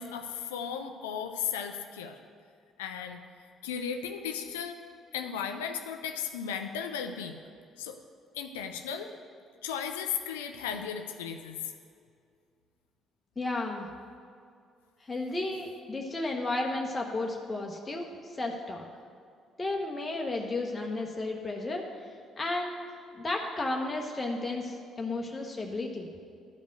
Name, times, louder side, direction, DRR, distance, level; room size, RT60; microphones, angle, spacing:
voice 1, 0.0-2.2 2.8-3.3 3.6-4.8 5.1-7.4 7.8-8.0 8.3-9.1 9.6-11.7, left 7 dB, 75° left, 6 dB, 0.4 m, -35 dB
voice 2, 13.4-13.9 15.1-18.8 19.6-21.9 22.4-26.1, left 2 dB, 20° left, 0 dB, 1.0 m, -33 dB
11.5 x 5.2 x 7.6 m, 2.3 s
figure-of-eight pair, 45°, 0 cm